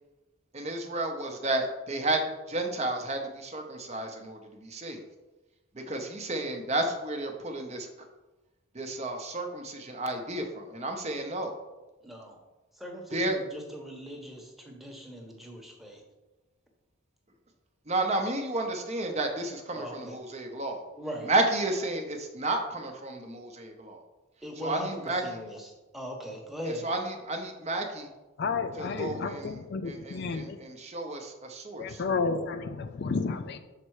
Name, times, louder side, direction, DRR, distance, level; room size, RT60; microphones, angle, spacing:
voice 1, 0.5-2.2 2.5-5.0 5.7-7.9 8.7-11.5 13.1-13.4 17.9-20.8 21.2-24.0 24.6-25.4 26.6-28.1 28.7-32.0, right 2 dB, 30° right, 4 dB, 0.7 m, -32 dB
voice 2, 12.0-12.4 12.8-16.0 19.7-20.2 20.9-21.3 24.4-26.9, equal, ahead, 0 dB, 0.9 m, -40 dB
voice 3, 28.4-30.6 31.8-33.6, left 4 dB, 50° left, 9 dB, 0.4 m, -31 dB
6.6 x 4.2 x 4.7 m, 1.1 s
head